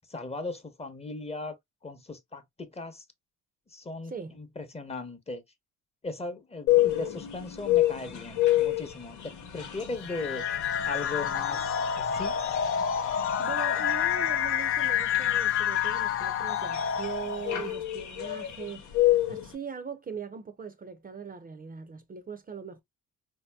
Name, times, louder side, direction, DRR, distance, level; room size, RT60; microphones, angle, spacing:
voice 1, 0.1-1.6 1.8-3.0 3.7-5.4 6.0-10.4 10.9-12.4, left 3 dB, 20° left, 0.8 m, -38 dB
voice 2, 4.0-4.4 13.4-22.8, right 6 dB, 30° right, 0.6 m, -40 dB
sound 1, 6.7-19.5, left 15 dB, 75° left, 1.0 m, -30 dB
sound 2, 10.0-17.6, left 9 dB, 45° left, 0.5 m, -28 dB
3.9 x 2.8 x 2.2 m
cardioid pair, 90°, 30 cm